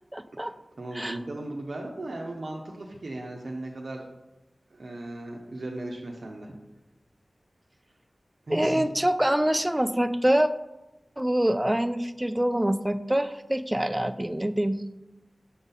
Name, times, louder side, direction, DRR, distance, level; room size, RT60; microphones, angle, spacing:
voice 1, 0.1-0.5 0.9-1.2 8.5-10.5 11.2-14.8, right 1 dB, 15° right, 12 dB, 0.3 m, -25 dB
voice 2, 0.8-4.0 4.7-6.5 8.5-8.8, right 1 dB, 70° right, -1 dB, 0.6 m, -37 dB
5.9 x 4.0 x 4.0 m, 1.0 s
wide cardioid pair, 65°, 0 cm